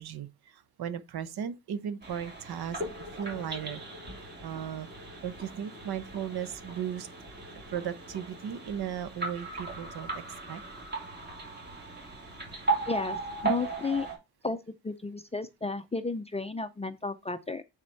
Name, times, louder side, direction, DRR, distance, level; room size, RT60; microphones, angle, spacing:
voice 1, 0.0-2.8 3.1-3.8 4.4-4.9 5.2-7.1 7.7-10.2 10.5-10.6, right 9 dB, 65° right, 1.1 m, -36 dB
sound 1, 2.0-14.2, right 3 dB, 25° right, 3.0 m, -37 dB
voice 2, 12.9-14.1 14.4-14.6 14.8-17.6, left 3 dB, 15° left, 0.4 m, -33 dB
9.0 x 4.2 x 4.4 m
wide cardioid pair, 160°, 40 cm